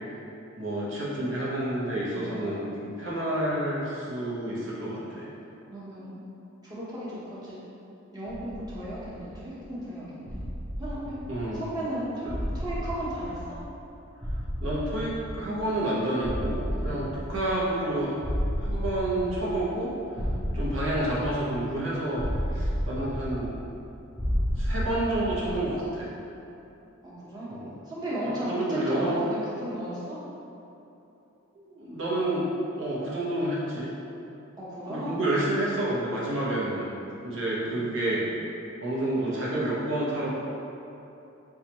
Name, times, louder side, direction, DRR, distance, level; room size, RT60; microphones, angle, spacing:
voice 1, 0.6-5.3 11.3-11.6 12.2-12.4 14.6-18.2 18.6-19.9 20.5-22.2 22.5-23.5 24.6-26.1 27.5-27.7 28.4-29.2 31.5-32.4 32.8-33.9 34.9-36.9 37.2-38.2 38.8-40.3, right 1 dB, 70° right, -7 dB, 0.9 m, -29 dB
voice 2, 1.9-2.6 5.7-6.2 6.6-7.6 8.1-10.4 10.8-11.2 11.5-12.2 12.5-13.6 16.7-16.9 20.1-20.4 27.0-27.5 27.9-30.2 34.6-35.2 37.6-38.3, right 1 dB, 20° right, -9 dB, 0.9 m, -35 dB
sound 1, 8.3-9.6 10.3-11.8 12.3-13.9 14.2-15.8 16.2-17.9 18.2-19.8 20.2-21.8 22.2-23.8 24.2-25.8, equal, 5° left, 0.4 m, -32 dB
5.5 x 2.3 x 3.0 m, 2.9 s
head